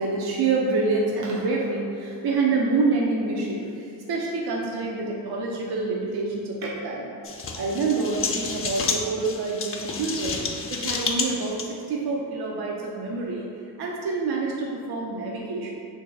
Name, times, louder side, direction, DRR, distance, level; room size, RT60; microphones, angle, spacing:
voice 1, 0.0-7.1 7.6-13.5 13.8-15.7, right 3 dB, 65° right, -2 dB, 0.5 m, -27 dB
sound 1, 7.2-11.7, left 4 dB, 35° left, 0.5 m, -30 dB
3.1 x 2.6 x 3.8 m, 2.4 s
cardioid pair, 55°, 41 cm